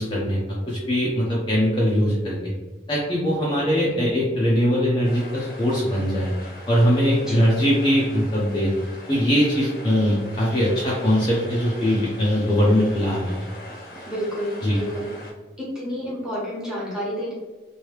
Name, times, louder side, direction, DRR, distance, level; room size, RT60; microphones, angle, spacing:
voice 1, 0.0-2.4 2.9-6.3 6.7-8.7 9.1-13.3 14.6-14.8, equal, 25° left, -6 dB, 0.6 m, -21 dB
sound 1, 5.0-15.3, left 1 dB, 50° left, 0.9 m, -42 dB
voice 2, 14.0-15.1 15.6-17.3, equal, 5° right, -7 dB, 1.1 m, -30 dB
3.1 x 2.7 x 3.1 m, 1.2 s
head